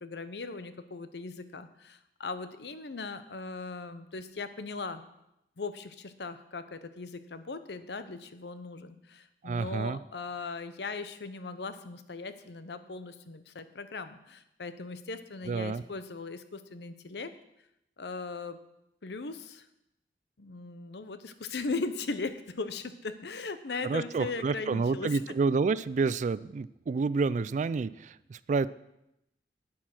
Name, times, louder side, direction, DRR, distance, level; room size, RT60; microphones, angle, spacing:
voice 1, 0.0-5.0 5.6-17.3 18.0-18.6 19.0-19.6 20.4-25.4, left 3 dB, 70° left, 11 dB, 0.8 m, -39 dB
voice 2, 9.4-10.0 15.5-15.8 23.8-28.7, right 4 dB, 45° right, 18 dB, 0.3 m, -29 dB
8.9 x 8.7 x 6.0 m, 0.85 s
head